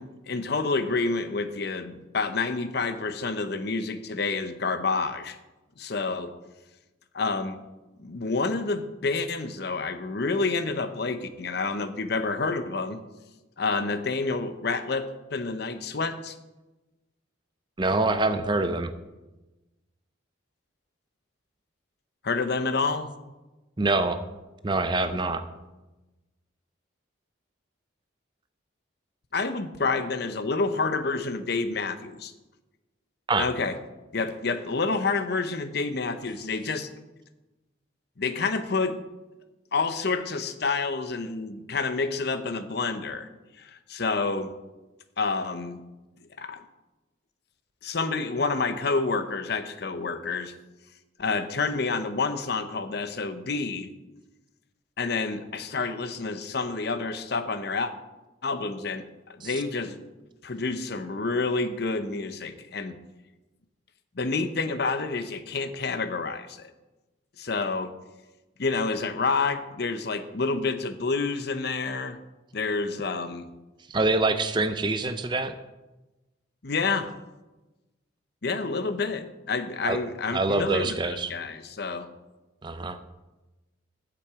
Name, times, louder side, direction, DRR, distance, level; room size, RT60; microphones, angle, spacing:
voice 1, 0.0-5.4 5.8-6.3 7.1-7.6 8.0-13.0 13.6-16.3 22.2-23.1 29.3-32.3 33.4-33.8 34.1-36.9 38.2-39.0 39.7-43.3 43.6-44.5 45.2-45.8 46.4-46.6 47.8-50.5 51.2-53.9 55.0-57.9 58.4-59.0 59.3-60.0 60.4-63.0 64.2-66.7 67.4-67.9 68.6-72.2 72.5-73.5 76.6-77.1 78.4-82.1, left 4 dB, 55° left, 10 dB, 0.7 m, -28 dB
voice 2, 17.8-18.9 23.8-24.2 24.6-25.4 33.3-33.5 59.4-59.5 73.9-75.6 79.9-80.0 80.3-81.3 82.6-83.0, right 2 dB, 25° right, 10 dB, 0.5 m, -25 dB
8.3 x 6.0 x 7.9 m, 1.1 s
head